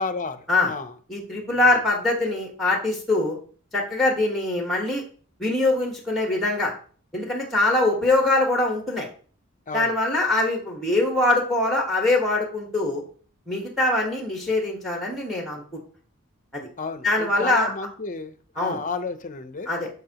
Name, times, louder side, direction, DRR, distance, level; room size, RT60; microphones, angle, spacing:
voice 1, 0.0-0.9 1.5-1.7 9.7-10.0 16.8-19.7, left 4 dB, 40° left, 0.7 m, -32 dB
voice 2, 1.1-3.4 3.7-5.0 5.4-6.7 7.1-9.1 9.7-13.0 13.5-15.6 16.5-16.7 17.0-17.7 18.6-18.8 19.7-19.9, left 2 dB, ahead, 1.4 m, -23 dB
10.5 x 6.2 x 2.9 m
head